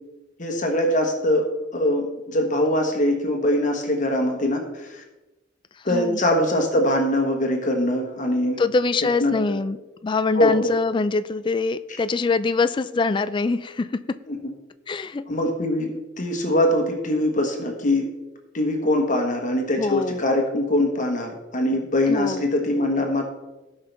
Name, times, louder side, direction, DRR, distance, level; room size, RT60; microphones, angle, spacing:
voice 1, 0.4-1.5 1.7-5.0 5.8-8.6 9.2-9.6 10.3-10.7 14.3-14.5 15.3-18.1 18.5-23.2, left 1 dB, 45° left, 2 dB, 1.4 m, -22 dB
voice 2, 8.6-9.8 10.0-13.9 14.9-15.2 19.8-20.2 22.1-22.4, left 4 dB, 25° left, 12 dB, 0.3 m, -23 dB
17.0 x 5.6 x 3.4 m, 1.1 s
head